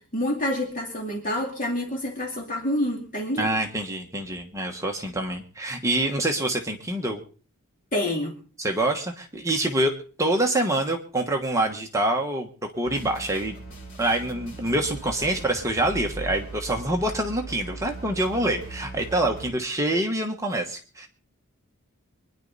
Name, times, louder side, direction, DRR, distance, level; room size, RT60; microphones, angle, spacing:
voice 1, 0.1-3.5 7.9-8.3, left 1 dB, 35° left, -1 dB, 2.5 m, -27 dB
voice 2, 3.4-7.2 8.6-12.5 12.8-13.5 14.0-21.1, right 1 dB, 15° right, 2 dB, 1.3 m, -26 dB
sound 1, 12.8-19.5, right 2 dB, 60° left, 6.4 m, -39 dB
24.5 x 10.5 x 4.1 m, 0.41 s
head